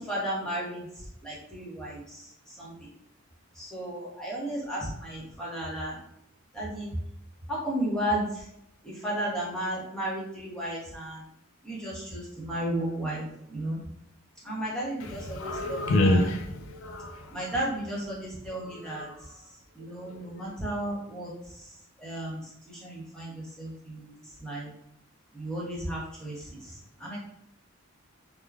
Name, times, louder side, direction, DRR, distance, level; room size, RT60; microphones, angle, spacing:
voice 1, 0.0-2.9 3.5-6.0 6.5-7.0 7.5-8.5 8.8-11.2 11.6-13.8 14.4-16.2 17.3-24.7 25.3-27.2, right 1 dB, 5° left, 0.8 m, -34 dB
voice 2, 15.0-17.5 18.6-19.3 19.8-20.4, left 1 dB, 75° left, 0.5 m, -29 dB
3.3 x 2.2 x 2.3 m
head